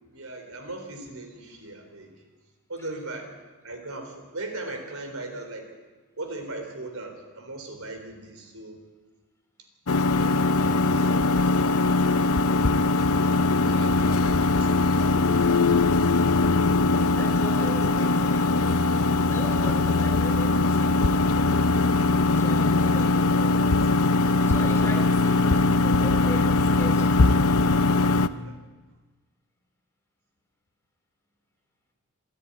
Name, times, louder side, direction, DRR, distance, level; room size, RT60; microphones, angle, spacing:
voice 1, 0.1-2.1 2.7-3.3 3.6-5.7 6.2-8.8 9.9-13.1 13.7-15.9 28.3-28.6, right 2 dB, 70° right, 5 dB, 3.9 m, -39 dB
sound 1, 9.9-28.3, left 3 dB, 75° left, 0.7 m, -21 dB
voice 2, 17.1-18.7 19.3-21.8 22.1-24.0 24.4-27.3, equal, 10° left, 2 dB, 2.9 m, -40 dB
27.0 x 10.5 x 9.8 m, 1.3 s
head